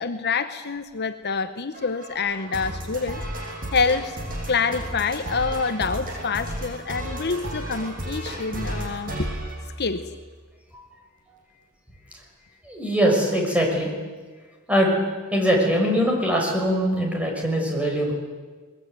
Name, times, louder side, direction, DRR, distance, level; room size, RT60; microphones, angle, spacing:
voice 1, 0.0-3.2 3.7-4.2 4.5-9.4 9.8-10.1, left 4 dB, 50° left, 10 dB, 0.9 m, -26 dB
sound 1, 1.7-10.3, right 1 dB, 40° right, 7.5 m, -33 dB
voice 2, 12.7-13.9 14.7-14.9 15.3-18.1, equal, 5° right, 0 dB, 5.8 m, -22 dB
22.0 x 21.0 x 9.4 m, 1.4 s
head